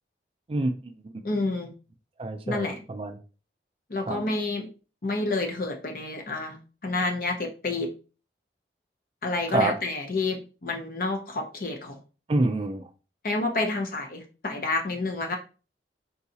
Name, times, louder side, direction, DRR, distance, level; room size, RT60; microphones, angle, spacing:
voice 1, 0.5-0.9 2.2-3.2 4.1-4.2 9.5-9.7 12.3-12.9, right 2 dB, 30° right, 0.3 m, -27 dB
voice 2, 1.2-1.7 2.5-2.8 3.9-4.7 5.0-7.9 9.2-12.0 13.2-15.4, left 2 dB, 50° left, 0.7 m, -29 dB
3.8 x 2.3 x 2.7 m
head